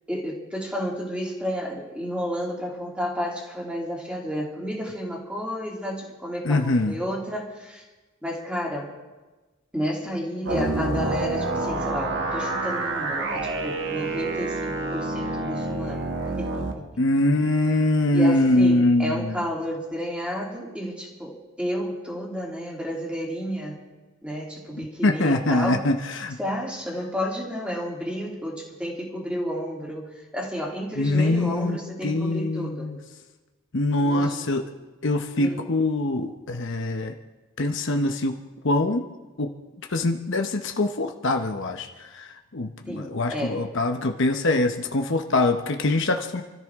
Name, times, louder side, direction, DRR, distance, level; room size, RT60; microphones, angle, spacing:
voice 1, 0.1-7.8 8.2-8.9 9.7-16.1 16.4-17.0 18.1-23.8 24.2-25.8 26.4-32.9 34.0-34.6 35.4-35.6 42.9-43.7, equal, 5° right, -3 dB, 3.1 m, -31 dB
voice 2, 6.4-7.0 17.0-19.4 25.0-26.4 31.0-33.0 33.7-34.7 35.0-37.1 37.6-38.3 38.6-39.0 39.4-39.5 39.9-41.9 42.1-46.4, left 2 dB, 55° left, 4 dB, 0.9 m, -23 dB
sound 1, 10.5-16.7, right 2 dB, 55° right, 1.6 m, -28 dB
28.5 x 13.5 x 3.6 m, 1.2 s
head